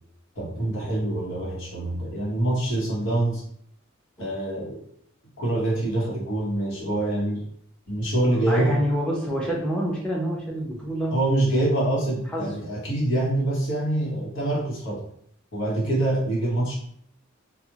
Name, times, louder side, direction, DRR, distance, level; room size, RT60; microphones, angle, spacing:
voice 1, 0.4-3.5 4.2-4.8 5.4-7.4 7.9-8.8 11.1-15.1 15.5-16.8, right 1 dB, 65° left, -4 dB, 1.0 m, -25 dB
voice 2, 8.5-11.1 12.3-12.6, equal, 5° left, -3 dB, 0.6 m, -27 dB
2.4 x 2.0 x 2.8 m, 0.68 s
head